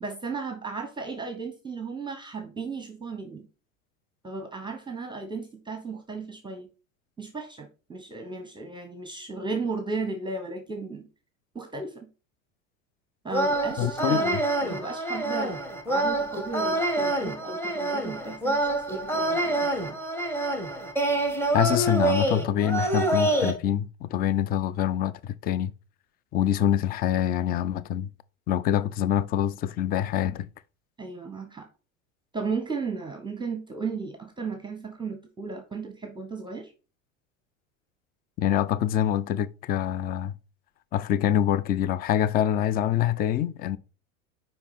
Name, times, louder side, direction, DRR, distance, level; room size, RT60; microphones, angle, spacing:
voice 1, 0.0-3.5 4.2-6.7 7.2-11.1 11.5-12.0 13.2-15.6 15.9-20.0 31.0-31.7 32.3-36.7, right 3 dB, 10° right, 1.0 m, -35 dB
sound 1, 13.3-23.5, right 2 dB, 5° left, 1.3 m, -26 dB
voice 2, 13.8-14.2 21.5-25.7 26.3-28.1 28.5-30.5 38.4-40.3 40.9-43.8, left 10 dB, 25° left, 0.3 m, -25 dB
5.8 x 5.1 x 4.1 m
hypercardioid pair, 100°, 40 cm